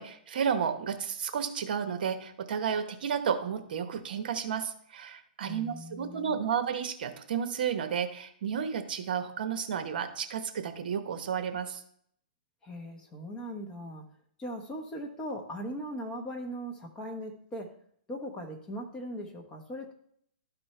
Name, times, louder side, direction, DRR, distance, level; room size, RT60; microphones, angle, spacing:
voice 1, 0.0-11.8, right 7 dB, 60° right, 8 dB, 1.0 m, -32 dB
voice 2, 5.5-6.5 12.6-14.0 14.4-17.8 18.1-19.9, equal, 15° left, 1 dB, 1.0 m, -39 dB
12.5 x 4.4 x 3.2 m, 0.65 s
hypercardioid pair, 155°, 6 cm